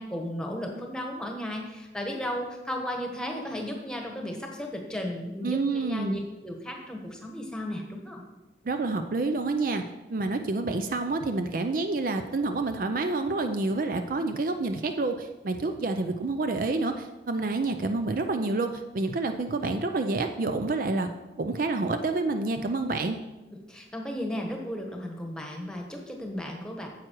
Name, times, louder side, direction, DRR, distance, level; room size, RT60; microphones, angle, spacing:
voice 1, 0.0-8.2 23.5-26.9, equal, 5° left, 1 dB, 1.3 m, -35 dB
voice 2, 5.4-6.2 8.6-9.8 10.1-21.1 21.4-23.2, right 3 dB, 50° right, 7 dB, 0.5 m, -28 dB
9.4 x 7.5 x 4.6 m, 1.1 s
head